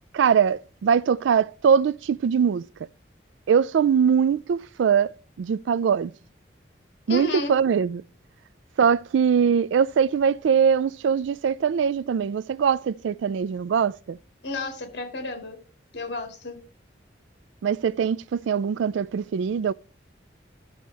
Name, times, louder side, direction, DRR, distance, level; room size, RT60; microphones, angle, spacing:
voice 1, 0.1-2.7 3.5-5.1 5.4-6.1 7.1-8.0 8.8-14.2 17.6-19.7, right 7 dB, 80° right, 0.3 m, -22 dB
voice 2, 7.1-7.5 14.4-15.6 15.9-16.6, left 2 dB, 65° left, 2.2 m, -32 dB
13.0 x 6.4 x 3.4 m
head